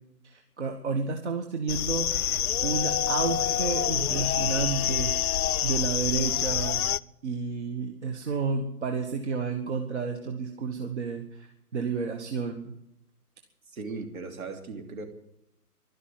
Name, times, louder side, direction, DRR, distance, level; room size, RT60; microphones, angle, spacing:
voice 1, 0.2-5.1 5.6-6.9 7.2-11.5 11.7-12.7, right 5 dB, 45° right, 5 dB, 1.5 m, -31 dB
sound 1, 1.7-7.0, left 10 dB, 65° left, 0.5 m, -27 dB
voice 2, 13.7-15.1, right 3 dB, 60° right, 5 dB, 3.0 m, -37 dB
12.5 x 12.0 x 9.2 m, 0.81 s
hypercardioid pair, 160°, 47 cm